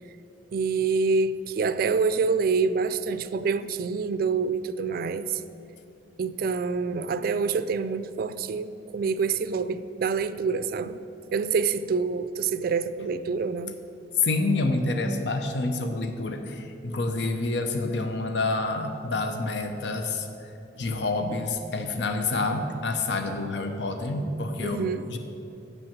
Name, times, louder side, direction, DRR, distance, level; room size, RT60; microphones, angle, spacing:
voice 1, 0.5-5.4 6.2-11.0 11.3-13.7 24.6-25.0, right 5 dB, 55° right, 13 dB, 0.3 m, -26 dB
voice 2, 14.2-20.5 20.8-24.8 25.1-25.2, left 3 dB, 75° left, 6 dB, 0.7 m, -28 dB
7.7 x 6.5 x 7.3 m, 2.8 s
head